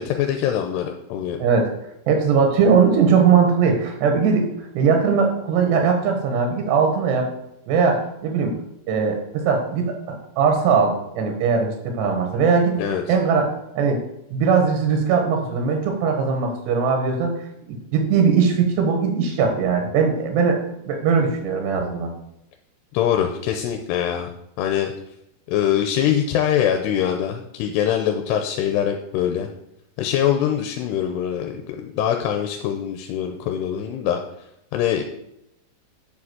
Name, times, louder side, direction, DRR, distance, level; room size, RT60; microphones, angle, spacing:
voice 1, 0.0-1.4 12.8-13.0 22.9-24.3 24.6-24.9 25.5-29.5 30.0-34.2 34.7-35.0, left 10 dB, 85° left, 4 dB, 2.9 m, -23 dB
voice 2, 2.1-4.5 4.8-7.3 7.7-8.5 8.9-12.8 13.1-14.0 14.3-17.3 17.9-20.6 20.9-22.1, right 5 dB, 90° right, 3 dB, 3.6 m, -20 dB
8.5 x 6.2 x 7.8 m, 0.82 s
omnidirectional pair, 4.7 m